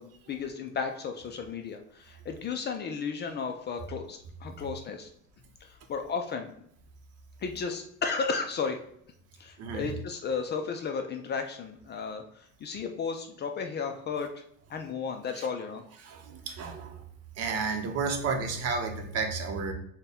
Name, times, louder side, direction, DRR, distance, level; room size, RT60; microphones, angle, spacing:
voice 1, 0.0-5.1 5.6-6.5 7.4-8.8 9.4-14.3 14.7-15.8, left 5 dB, 30° left, 5 dB, 0.4 m, -34 dB
voice 2, 9.6-9.9 15.3-15.5 16.0-17.0 17.4-19.7, right 4 dB, 50° right, 3 dB, 0.8 m, -32 dB
4.2 x 2.2 x 3.5 m, 0.70 s
cardioid pair, 125°, 33 cm